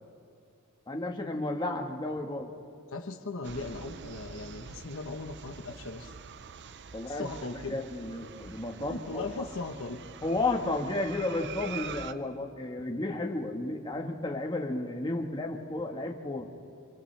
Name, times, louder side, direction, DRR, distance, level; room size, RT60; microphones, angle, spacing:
voice 1, 0.9-2.5 6.9-7.3 7.7-9.2 10.2-16.5, left 2 dB, 20° left, 1 dB, 1.5 m, -32 dB
voice 2, 2.9-6.1 7.1-7.8 8.9-10.0, left 3 dB, 65° left, 5 dB, 1.1 m, -38 dB
sound 1, 3.4-12.1, right 6 dB, 55° right, 0.6 m, -45 dB
28.0 x 27.0 x 3.4 m, 2.5 s
head